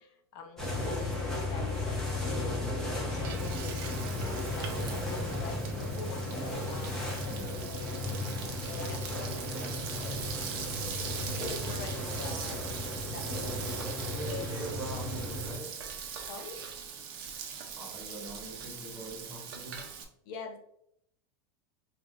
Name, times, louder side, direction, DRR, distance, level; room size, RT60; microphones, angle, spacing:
voice 1, 0.3-1.0 1.2-2.6 3.1-3.8 4.1-8.0 8.7-10.3 10.9-13.4 13.7-13.8 14.3-14.6 16.3-16.6 20.3-20.6, left 4 dB, 55° left, 0.6 m, -45 dB
sound 1, 0.6-15.5, left 2 dB, 5° left, 0.9 m, -35 dB
Frying (food), 2.8-20.0, right 7 dB, 60° right, 0.7 m, -42 dB
voice 2, 7.2-7.7 14.1-15.9 17.7-20.0, right 2 dB, 20° right, 1.0 m, -43 dB
4.7 x 2.4 x 2.5 m
supercardioid pair, 160°, 13 cm